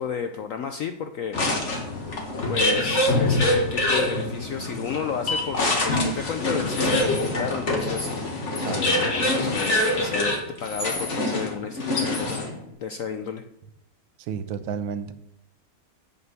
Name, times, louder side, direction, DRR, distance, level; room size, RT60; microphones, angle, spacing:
voice 1, 0.0-1.4 2.5-8.3 8.6-10.3 10.6-12.5 12.8-13.4, left 7 dB, 80° left, 7 dB, 0.7 m, -32 dB
sound 1, 1.3-12.6, left 1 dB, 40° left, 1.8 m, -25 dB
voice 2, 8.6-9.1 14.3-15.1, right 7 dB, 85° right, 12 dB, 1.5 m, -31 dB
8.4 x 7.0 x 6.8 m, 0.78 s
omnidirectional pair, 2.1 m